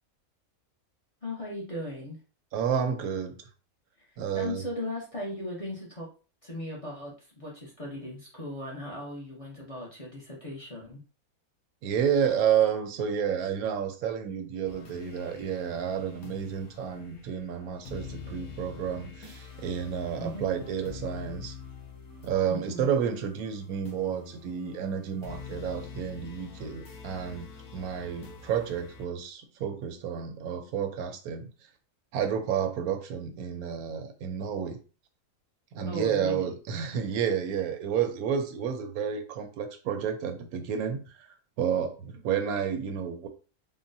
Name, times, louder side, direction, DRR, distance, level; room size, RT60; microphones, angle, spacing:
voice 1, 1.2-2.2 4.0-6.1 6.4-11.0 20.2-20.5 22.5-22.9 35.8-36.5, left 1 dB, 30° left, -4 dB, 0.6 m, -38 dB
voice 2, 2.5-3.3 4.2-4.6 11.8-21.5 22.2-27.5 27.7-31.5 32.1-34.8 35.7-41.3 41.6-43.3, right 8 dB, 85° right, 6 dB, 1.1 m, -30 dB
sound 1, 14.6-29.0, left 5 dB, 80° left, 1.2 m, -46 dB
3.8 x 2.1 x 2.6 m, 0.36 s
omnidirectional pair, 1.5 m